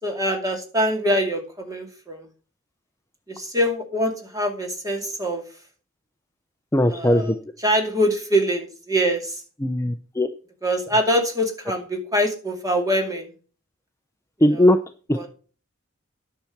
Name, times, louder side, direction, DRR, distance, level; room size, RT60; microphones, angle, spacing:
voice 1, 0.0-2.3 3.3-5.4 6.9-7.3 7.6-9.4 10.6-13.3 14.5-14.7 15.2-15.3, equal, 15° right, 3 dB, 2.2 m, -24 dB
voice 2, 6.7-7.4 9.6-10.3 14.4-14.8 15.1-15.3, left 1 dB, 15° left, 7 dB, 0.5 m, -19 dB
9.9 x 5.9 x 5.8 m, 0.37 s
head